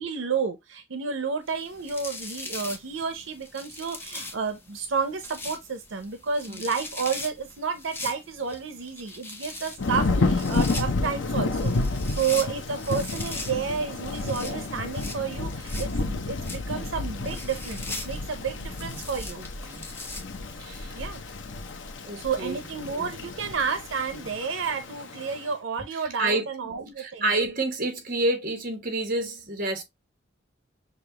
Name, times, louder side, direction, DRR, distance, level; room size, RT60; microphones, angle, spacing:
voice 1, 0.0-19.4 20.9-21.2 22.0-27.2, right 5 dB, 85° right, 0.6 m, -31 dB
sound 1, 1.5-20.7, left 2 dB, 10° left, 0.7 m, -41 dB
Thunder / Rain, 9.8-25.4, left 3 dB, 80° left, 0.7 m, -30 dB
voice 2, 19.3-19.9 20.6-21.0 22.0-23.1 26.2-26.5 27.0-29.8, right 2 dB, 45° right, 1.5 m, -29 dB
6.6 x 2.4 x 2.8 m
head